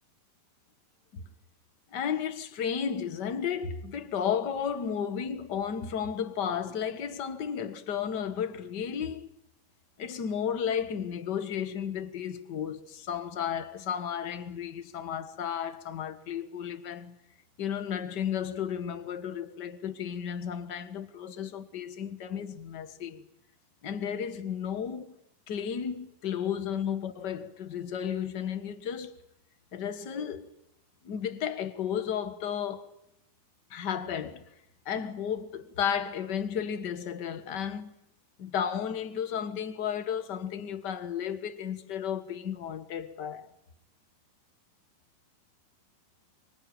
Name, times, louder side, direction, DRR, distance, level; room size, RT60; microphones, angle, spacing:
voice 1, 1.9-9.3 10.0-17.2 17.6-23.2 23.8-25.1 25.5-29.2 29.7-30.5 31.0-32.9 33.7-34.4 34.8-37.9 38.4-43.5, left 8 dB, 55° left, 1.2 m, -33 dB
25.5 x 24.5 x 9.0 m
omnidirectional pair, 4.1 m